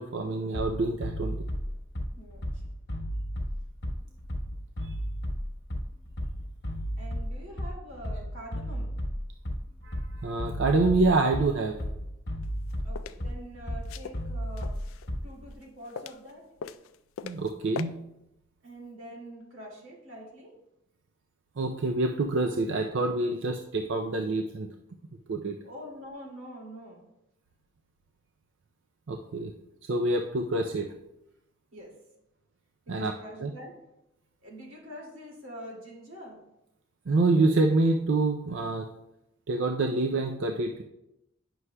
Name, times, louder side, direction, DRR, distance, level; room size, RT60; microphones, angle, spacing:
voice 1, 0.0-1.4 4.8-4.9 9.8-11.7 17.2-17.9 21.6-24.7 25.3-25.6 29.1-29.5 29.9-30.9 32.9-33.1 33.4-33.5 37.1-38.9 39.5-40.8, right 2 dB, 65° right, 3 dB, 0.4 m, -26 dB
Bass drum, 0.5-15.5, equal, 55° left, 1.2 m, -34 dB
voice 2, 7.0-8.9 12.8-14.7 15.2-16.5 18.6-20.5 25.6-27.0 31.7-31.9 32.9-33.7 34.4-36.4, equal, 90° right, -1 dB, 2.2 m, -45 dB
walking on floor with heals, 12.4-13.2 13.8-15.1 15.5-16.3 16.6-17.5 17.8-17.9, left 7 dB, 85° left, 0.3 m, -40 dB
9.6 x 6.1 x 2.2 m, 0.87 s
head